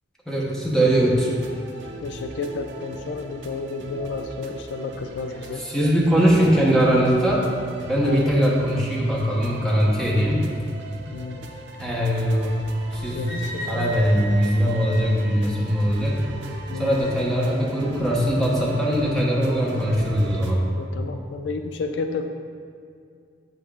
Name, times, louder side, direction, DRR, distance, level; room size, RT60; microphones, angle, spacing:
voice 1, 0.3-1.3 5.6-7.5 7.8-10.4 11.8-12.5 12.9-13.4 13.7-16.2 16.7-20.6, equal, 5° left, -5 dB, 0.8 m, -21 dB
sound 1, 0.8-20.5, right 2 dB, 70° right, 0.6 m, -40 dB
voice 2, 2.0-5.7 8.0-8.2 11.1-11.5 13.1-13.9 16.7-17.0 20.4-22.3, left 4 dB, 70° left, 6 dB, 0.3 m, -31 dB
Wind instrument woodwind instrument, 13.3-17.1, equal, 35° right, 0.9 m, -39 dB
7.6 x 5.6 x 2.3 m, 2.3 s
head